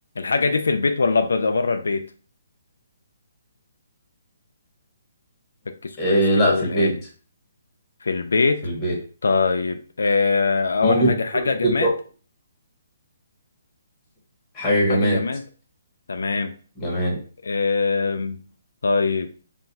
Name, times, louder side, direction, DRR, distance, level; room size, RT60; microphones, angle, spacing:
voice 1, 0.2-2.1 5.8-7.0 8.0-8.6 9.2-11.9 14.9-15.4 16.1-16.5 17.4-18.4 18.8-19.3, left 4 dB, 85° left, 7 dB, 0.3 m, -22 dB
voice 2, 6.0-6.9 8.6-9.0 10.8-11.1 11.4-11.9 14.5-15.2 16.8-17.2, equal, 15° left, -3 dB, 1.0 m, -21 dB
2.4 x 2.2 x 3.9 m, 0.40 s
hypercardioid pair, 160°, 0 cm